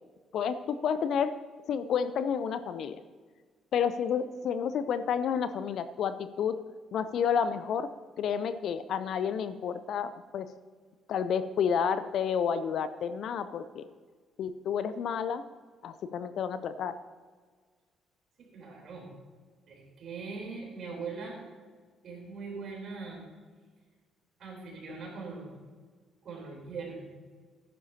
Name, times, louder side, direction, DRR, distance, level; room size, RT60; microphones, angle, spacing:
voice 1, 0.3-1.4 1.7-3.0 3.7-6.6 6.9-7.9 8.2-10.5 11.1-13.9 14.4-15.4 15.8-17.0, left 7 dB, 60° left, 12 dB, 0.6 m, -30 dB
voice 2, 18.4-19.1 19.7-21.4 22.0-23.3 24.4-25.6 26.2-27.1, right 4 dB, 55° right, 0 dB, 3.8 m, -41 dB
14.5 x 11.0 x 2.9 m, 1.5 s
hypercardioid pair, 45°, 0 cm